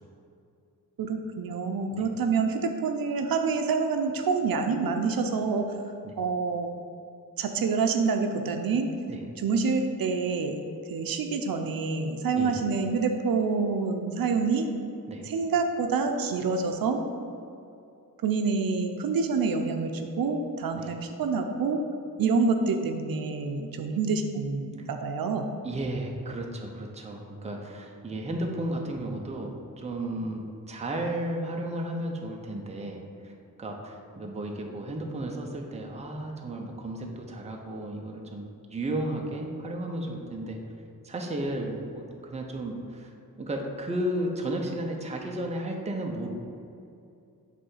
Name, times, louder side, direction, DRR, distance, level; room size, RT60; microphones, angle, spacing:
voice 1, 1.0-5.7 6.2-6.7 7.4-8.9 9.4-10.6 10.9-14.7 15.3-17.0 18.2-19.9 20.2-21.8 22.2-25.5, right 4 dB, 75° right, 5 dB, 0.6 m, -27 dB
voice 2, 25.6-33.3 33.6-40.6 41.0-43.1 43.4-46.3, right 1 dB, 20° right, 1 dB, 0.6 m, -34 dB
8.4 x 3.4 x 5.5 m, 2.6 s
wide cardioid pair, 175°, 35 cm